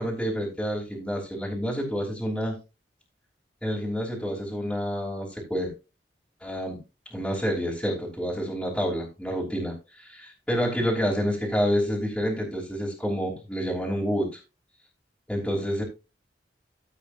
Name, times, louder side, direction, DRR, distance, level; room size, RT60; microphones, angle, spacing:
voice 1, 0.0-2.6 3.6-5.7 6.4-6.8 7.1-14.3 15.3-15.8, equal, 5° left, -4 dB, 3.1 m, -28 dB
14.0 x 8.0 x 2.6 m, 0.28 s
head